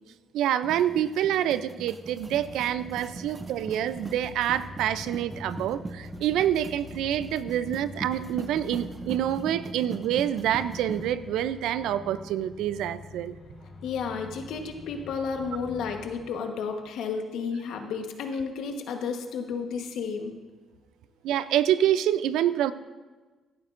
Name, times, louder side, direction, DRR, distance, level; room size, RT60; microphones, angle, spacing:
voice 1, 0.3-13.4 21.2-22.7, right 11 dB, 85° right, 14 dB, 0.4 m, -27 dB
sound 1, 0.6-11.1, right 3 dB, 25° right, 0.5 m, -41 dB
sound 2, 2.2-16.2, left 4 dB, 55° left, 2.6 m, -46 dB
voice 2, 13.8-20.3, left 5 dB, 80° left, 5 dB, 1.1 m, -32 dB
16.5 x 11.5 x 2.5 m, 1.3 s
cardioid pair, 85°, 0 cm